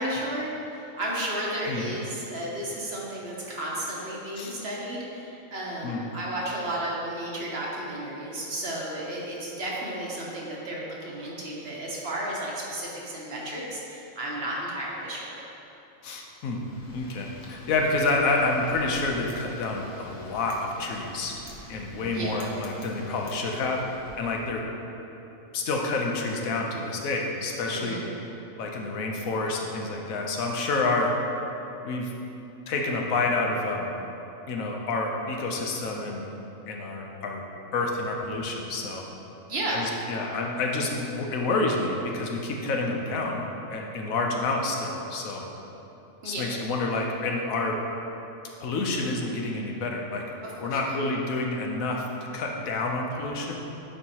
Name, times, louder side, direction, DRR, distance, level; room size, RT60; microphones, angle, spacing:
voice 1, 0.0-15.4 22.1-22.4 27.7-28.0 39.5-39.8 46.2-46.4 50.4-50.9, right 1 dB, 50° right, -4 dB, 1.2 m, -33 dB
voice 2, 16.0-16.6 16.9-21.3 21.7-23.8 24.1-24.6 25.5-28.0 28.6-31.1 31.8-32.1 32.7-33.9 34.5-36.2 36.7-37.4 37.7-39.1 39.7-43.4 43.7-45.4 46.2-47.8 48.6-50.2 50.6-52.1 52.3-53.5, left 3 dB, 80° left, 0 dB, 1.2 m, -28 dB
Wind, 16.4-24.6, left 2 dB, 45° left, 0.7 m, -47 dB
9.9 x 4.5 x 2.9 m, 2.9 s
omnidirectional pair, 1.4 m